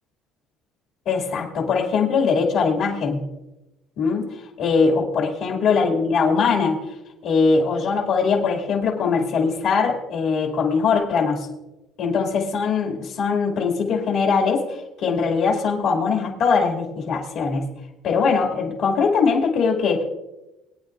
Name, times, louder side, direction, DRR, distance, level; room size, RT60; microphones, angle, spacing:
voice 1, 1.1-3.2 4.0-4.3 4.6-6.8 7.2-11.5 12.0-17.7 18.0-20.0, left 5 dB, 60° left, 0 dB, 2.4 m, -21 dB
22.5 x 9.5 x 2.6 m, 0.96 s
cardioid pair, 150°, 0 cm